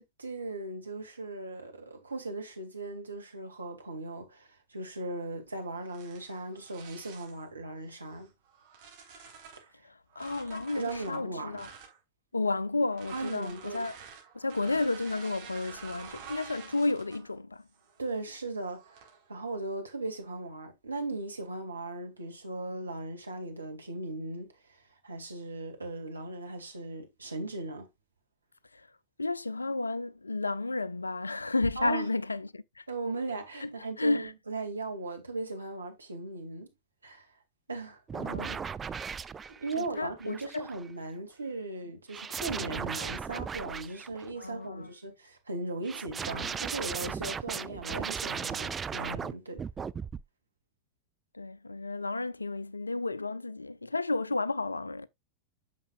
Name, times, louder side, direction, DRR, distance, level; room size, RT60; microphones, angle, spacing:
voice 1, 0.0-8.3 9.6-9.7 10.8-11.6 13.1-13.8 18.0-27.9 31.8-32.0 32.9-36.7 37.0-37.3 37.7-38.0 39.6-49.6, right 2 dB, 80° right, 2.3 m, -38 dB
sound 1, 5.8-7.4 8.1-9.7 10.1-12.0 12.9-17.3 17.7-18.1 18.7-19.2, right 6 dB, 50° right, 4.2 m, -49 dB
voice 2, 9.8-11.7 12.3-14.0 14.3-17.7 28.7-28.9 29.2-32.9 33.6-34.3 38.1-38.7 39.8-40.7 44.3-44.9 51.3-55.1, left 2 dB, 80° left, 0.4 m, -32 dB
sound 2, 38.1-40.9 42.1-44.4 45.8-49.3 49.6-50.2, right 6 dB, 20° right, 0.4 m, -37 dB
9.5 x 6.9 x 2.4 m
figure-of-eight pair, 90°, 0 cm